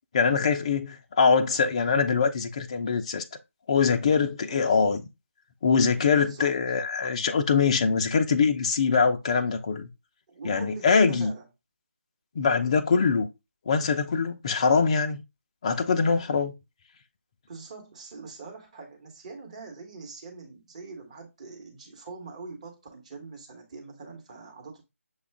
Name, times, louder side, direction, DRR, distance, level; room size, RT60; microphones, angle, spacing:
voice 1, 0.1-3.2 3.7-5.0 5.6-9.9 10.4-11.3 12.4-13.3 13.7-15.2 15.6-16.5, left 5 dB, 25° left, 0.3 m, -23 dB
voice 2, 6.0-6.5 10.3-11.5 17.5-24.8, right 4 dB, 30° right, 1.1 m, -43 dB
6.5 x 2.3 x 3.4 m
figure-of-eight pair, 155°, 8 cm